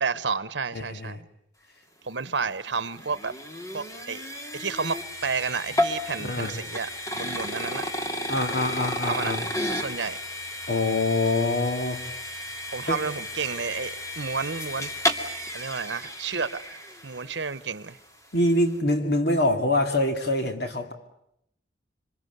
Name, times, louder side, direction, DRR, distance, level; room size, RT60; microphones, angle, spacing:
voice 1, 0.0-1.3 2.1-3.4 3.7-4.2 4.5-7.8 9.1-10.2 12.7-14.9 15.5-18.0, right 5 dB, 70° right, 1.1 m, -31 dB
voice 2, 0.7-1.2 6.1-6.6 7.6-7.7 8.3-9.4 10.7-12.0 12.9-13.0 18.3-20.9, left 1 dB, 60° left, 2.5 m, -25 dB
sound 1, 2.3-17.5, left 1 dB, 15° left, 2.3 m, -33 dB
27.0 x 26.0 x 8.1 m
head